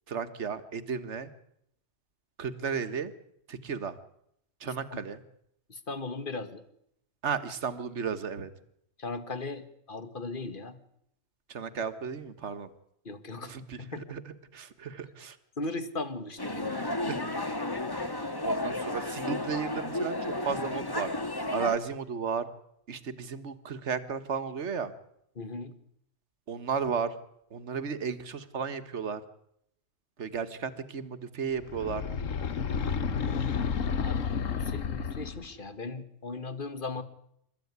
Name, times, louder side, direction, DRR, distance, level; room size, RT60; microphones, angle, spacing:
voice 1, 0.1-1.3 2.4-3.1 3.5-4.0 4.6-5.2 7.2-8.5 11.5-12.7 13.4-15.4 16.8-17.4 18.4-20.2 20.4-21.1 21.5-22.5 22.9-24.9 26.5-27.1 27.5-29.2 30.2-32.0, right 6 dB, 60° right, 11 dB, 1.8 m, -34 dB
voice 2, 5.7-6.6 9.0-10.8 13.1-14.2 15.6-16.8 25.4-25.7 33.4-37.0, left 3 dB, 40° left, 11 dB, 1.9 m, -38 dB
sound 1, 16.4-21.8, left 2 dB, 20° left, 1.6 m, -33 dB
sound 2, 31.6-35.5, left 6 dB, 80° left, 1.5 m, -31 dB
28.0 x 14.5 x 9.6 m, 0.74 s
omnidirectional pair, 1.3 m